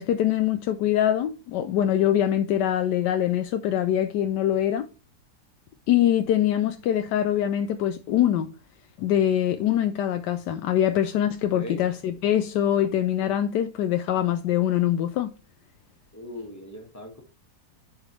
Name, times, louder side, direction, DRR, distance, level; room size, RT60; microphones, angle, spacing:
voice 1, 0.0-4.9 5.9-8.5 9.0-15.3, left 11 dB, 85° left, 1.2 m, -23 dB
voice 2, 11.5-11.8 16.1-17.2, equal, 10° left, 1.5 m, -39 dB
11.0 x 4.9 x 3.1 m
omnidirectional pair, 1.8 m